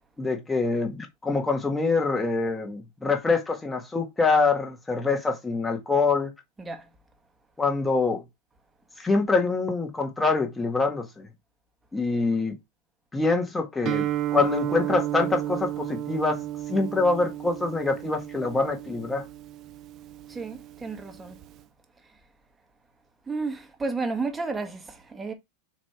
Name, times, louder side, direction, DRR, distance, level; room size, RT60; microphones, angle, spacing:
voice 1, 0.2-6.3 7.6-8.2 9.0-11.3 11.9-12.6 13.1-14.0 14.3-16.4 16.7-19.2, left 3 dB, 10° left, 1.6 m, -25 dB
voice 2, 6.6-6.9 20.3-21.4 22.1-22.2 23.3-25.3, right 3 dB, 15° right, 1.7 m, -32 dB
Guitar, 13.8-21.6, right 13 dB, 40° right, 0.6 m, -33 dB
6.2 x 3.4 x 4.6 m
hypercardioid pair, 115°, 0 cm